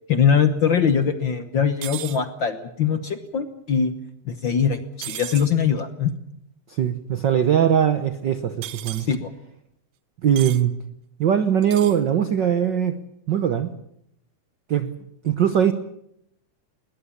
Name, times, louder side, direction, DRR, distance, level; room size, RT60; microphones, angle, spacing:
voice 1, 0.1-3.9 4.2-6.1 9.1-9.3, left 7 dB, 55° left, 10 dB, 1.4 m, -22 dB
sound 1, 1.8-2.2 5.0-5.5 8.6-9.1 10.4-10.6 11.6-12.0, right 14 dB, 85° right, 2.5 m, -35 dB
voice 2, 6.7-9.1 10.2-10.7 11.2-13.0 13.3-13.7 14.7-14.9 15.2-15.7, right 9 dB, 65° right, 11 dB, 1.1 m, -21 dB
20.5 x 20.0 x 8.6 m, 0.75 s
omnidirectional pair, 3.4 m